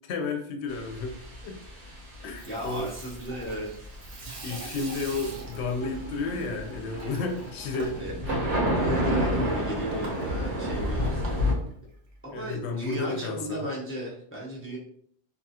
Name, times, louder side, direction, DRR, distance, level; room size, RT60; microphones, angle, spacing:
voice 1, 0.1-1.2 1.4-1.6 2.2-2.9 4.4-8.0 12.3-13.7, left 3 dB, 75° left, 4 dB, 0.8 m, -32 dB
sound 1, 0.7-11.5, equal, 80° right, 1.2 m, -30 dB
Water tap faucet / Sink (filling or washing), 2.2-12.4, right 2 dB, 50° right, 0.6 m, -43 dB
voice 2, 2.5-3.9 7.8-8.1 8.7-11.4 12.2-14.8, equal, 20° left, -5 dB, 0.4 m, -35 dB
2.9 x 2.3 x 2.7 m, 0.67 s
omnidirectional pair, 1.2 m